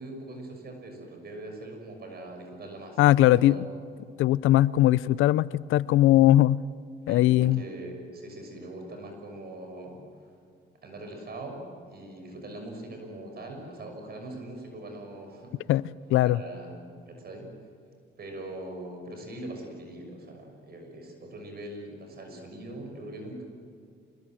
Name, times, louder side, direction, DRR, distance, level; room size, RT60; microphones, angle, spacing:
voice 1, 0.0-3.6 7.1-10.0 10.8-15.6 16.2-16.8 17.1-17.5 18.2-23.4, right 1 dB, 55° right, 3 dB, 6.2 m, -41 dB
voice 2, 3.0-3.6 4.2-6.6 7.1-7.6 15.7-15.8 16.1-16.4, left 14 dB, 85° left, 19 dB, 0.6 m, -20 dB
26.5 x 21.0 x 7.7 m, 2.2 s
cardioid pair, 90°, 20 cm